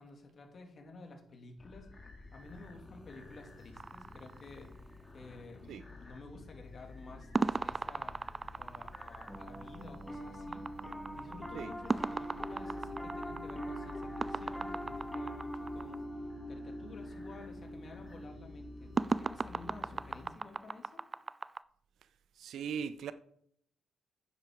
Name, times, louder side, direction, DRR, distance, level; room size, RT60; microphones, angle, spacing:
voice 1, 0.0-1.9 2.3-4.7 5.1-8.2 8.5-10.7 11.1-16.0 16.5-21.0, left 3 dB, 45° left, 2.6 m, -52 dB
sound 1, 1.6-20.3, left 2 dB, 20° left, 2.5 m, -52 dB
sound 2, 3.8-5.1 7.3-16.0 19.0-21.6, right 3 dB, 30° right, 0.4 m, -37 dB
Piano, 9.3-20.8, equal, 5° left, 1.6 m, -44 dB
voice 2, 22.4-23.1, right 7 dB, 70° right, 0.6 m, -39 dB
9.6 x 9.1 x 4.7 m
cardioid pair, 90°, 0 cm